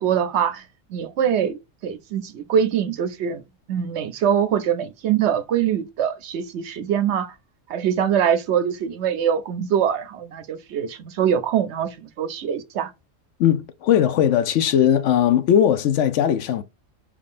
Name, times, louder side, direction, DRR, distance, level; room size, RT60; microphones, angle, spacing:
voice 1, 0.0-1.6 1.8-3.4 3.7-7.4 7.7-12.9, right 8 dB, 65° right, 0.8 m, -23 dB
voice 2, 13.4-16.6, left 9 dB, 70° left, 0.9 m, -19 dB
4.9 x 3.6 x 2.4 m
omnidirectional pair, 1.4 m